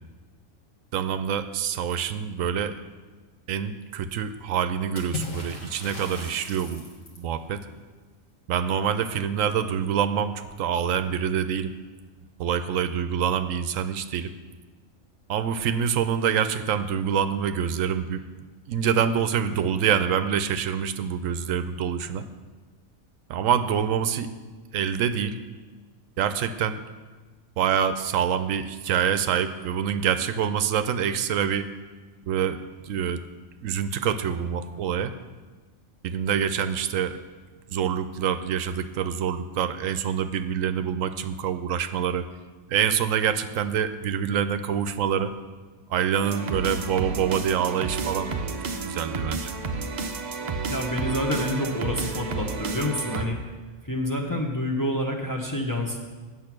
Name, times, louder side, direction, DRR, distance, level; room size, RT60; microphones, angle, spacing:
voice 1, 0.9-2.8 3.5-6.8 7.2-7.6 8.5-11.7 12.4-14.3 15.3-18.2 18.7-22.3 23.3-24.3 24.7-25.4 26.2-26.8 27.6-31.7 32.3-33.2 33.6-35.1 36.0-37.2 37.7-42.3 42.7-45.3 45.9-48.3 48.6-49.5, right 8 dB, 80° right, 11 dB, 1.0 m, -26 dB
Water / Splash splatter, 5.0-7.3, left 3 dB, 80° left, 1.9 m, -37 dB
sound 1, 46.2-53.2, right 4 dB, 45° right, 0.6 m, -31 dB
voice 2, 50.7-53.5 53.8-56.0, left 1 dB, 15° left, 0 dB, 0.8 m, -28 dB
8.6 x 7.5 x 6.1 m, 1.3 s
omnidirectional pair, 1.4 m